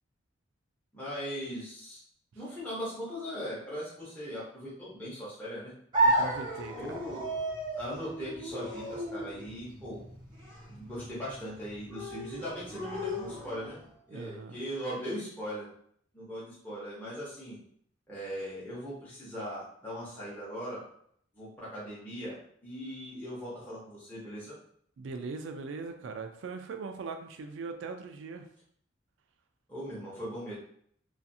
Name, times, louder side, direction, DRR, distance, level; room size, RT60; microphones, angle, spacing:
voice 1, 0.9-2.0 2.3-5.7 6.7-7.2 7.8-10.0 10.7-13.8 14.1-15.7 16.1-17.6 18.1-20.8 21.3-22.4 22.6-24.5 29.7-30.5, equal, 10° left, -9 dB, 0.8 m, -39 dB
sound 1, 5.9-13.9, right 1 dB, 25° right, 0.6 m, -33 dB
voice 2, 6.0-7.1 14.1-14.6 25.0-28.4, right 4 dB, 70° right, 5 dB, 0.3 m, -40 dB
2.4 x 2.4 x 2.6 m, 0.65 s
head